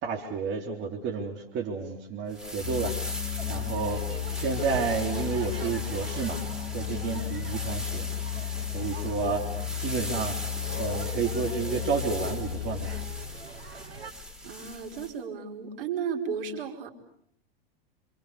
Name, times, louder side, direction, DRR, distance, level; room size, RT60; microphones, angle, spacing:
voice 1, 0.0-6.4 6.7-8.1 8.7-13.0, right 5 dB, 35° right, 2 dB, 3.7 m, -31 dB
sound 1, 2.3-15.1, equal, ahead, 4.5 m, -40 dB
Musical instrument, 2.6-13.4, left 13 dB, 35° left, 2.2 m, -34 dB
sound 2, 3.4-14.1, right 5 dB, 85° right, 2.8 m, -43 dB
voice 2, 14.4-16.9, right 6 dB, 65° right, 2 dB, 5.3 m, -34 dB
28.0 x 27.5 x 6.9 m, 0.67 s
hypercardioid pair, 100°, 30 cm